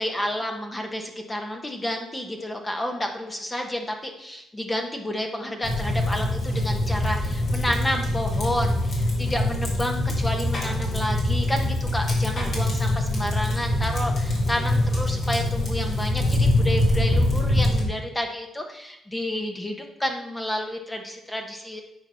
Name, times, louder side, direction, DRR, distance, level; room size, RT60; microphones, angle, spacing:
voice 1, 0.0-21.8, left 1 dB, 15° left, 3 dB, 1.0 m, -30 dB
sound 1, 5.6-17.8, left 1 dB, 50° left, 2.7 m, -24 dB
9.0 x 4.1 x 5.7 m, 0.86 s
cardioid pair, 90°, 0 cm